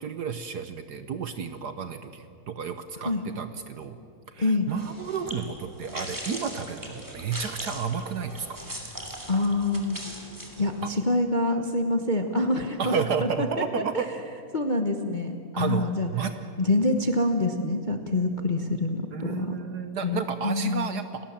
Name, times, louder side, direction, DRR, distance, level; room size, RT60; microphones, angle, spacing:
voice 1, 0.0-4.0 4.3-8.5 9.0-9.1 12.8-14.1 15.6-15.9 16.1-16.3 19.1-21.3, right 6 dB, 60° right, 9 dB, 1.3 m, -31 dB
voice 2, 4.4-4.7 9.3-10.0 10.6-12.9 13.2-13.7 13.9-14.0 14.5-16.1 16.6-19.6 20.0-20.9, left 2 dB, 30° left, 4 dB, 0.9 m, -26 dB
sound 1, 4.7-10.9, right 1 dB, 10° right, 2.8 m, -40 dB
29.5 x 18.0 x 7.4 m, 2.6 s
omnidirectional pair, 2.4 m